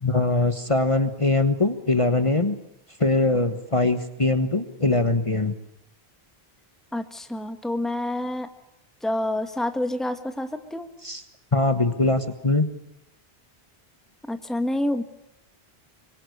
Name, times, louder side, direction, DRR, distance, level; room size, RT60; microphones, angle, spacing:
voice 1, 0.0-2.5 3.0-5.5 11.0-11.2 11.5-12.7, left 2 dB, 30° left, 8 dB, 1.4 m, -22 dB
voice 2, 6.9-8.5 9.0-10.9 14.3-15.0, left 1 dB, ahead, 7 dB, 1.6 m, -28 dB
25.0 x 23.0 x 8.1 m, 0.84 s
omnidirectional pair, 1.0 m